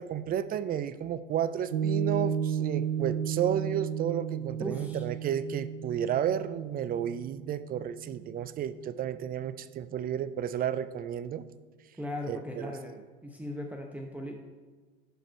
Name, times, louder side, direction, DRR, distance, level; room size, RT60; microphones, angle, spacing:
voice 1, 0.0-11.4 12.3-12.7, right 9 dB, 30° right, 15 dB, 0.4 m, -32 dB
Piano, 1.7-8.4, right 8 dB, 85° right, 0.6 m, -33 dB
voice 2, 4.6-5.0 12.0-12.9 13.2-14.4, left 1 dB, 5° right, 1 dB, 0.8 m, -38 dB
11.5 x 4.9 x 4.5 m, 1.4 s
hypercardioid pair, 90°, 31 cm